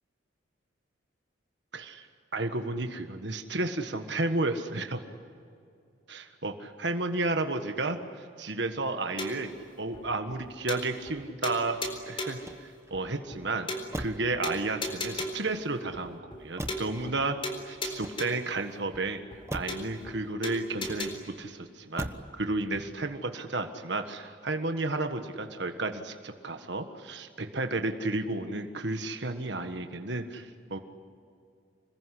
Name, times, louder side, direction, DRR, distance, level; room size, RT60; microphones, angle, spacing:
voice 1, 1.7-2.1 2.3-5.0 6.1-9.5 9.8-11.8 12.1-17.4 17.6-22.1 22.4-30.8, right 2 dB, 65° right, 6 dB, 1.6 m, -32 dB
sound 1, 9.2-9.5 9.9-10.0 10.3-10.4 10.7-11.2 11.4-12.5 12.9-13.0 13.3-13.4 13.7-14.2 14.4-15.5 15.9-16.0 16.3-16.4 16.7-17.2 17.4-18.5 18.9-19.0 19.3-19.4 19.7-20.2 20.4-21.1, left 1 dB, 30° left, 4.0 m, -36 dB
Motor vehicle (road), 12.3-13.1 13.9-14.4 15.0-15.7 16.6-17.0 17.8-18.6 19.5-19.9 20.8-21.4 22.0-22.4 22.7-23.2, right 1 dB, 15° right, 1.2 m, -40 dB
26.5 x 21.0 x 10.0 m, 2.3 s
head